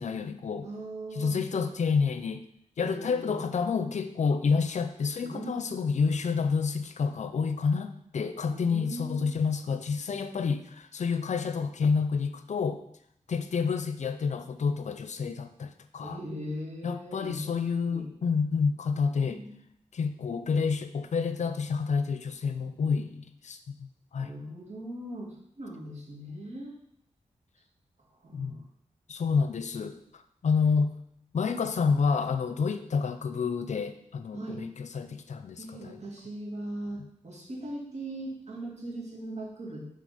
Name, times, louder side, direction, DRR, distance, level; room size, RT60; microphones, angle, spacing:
voice 1, 0.0-0.7 1.2-2.4 2.8-12.8 13.3-16.2 16.8-19.4 19.9-23.6 24.1-24.3 28.3-28.6 29.1-30.0 30.4-31.0 31.3-36.0 37.0-37.1, left 5 dB, 65° left, 10 dB, 0.6 m, -29 dB
voice 2, 0.6-1.4 2.8-3.4 5.2-5.9 8.5-9.2 16.0-18.1 18.9-19.6 24.2-26.7 28.2-28.6 34.3-34.6 35.6-40.0, right 1 dB, 60° right, -2 dB, 2.0 m, -40 dB
6.6 x 4.0 x 5.0 m, 0.72 s
cardioid pair, 75°, 13 cm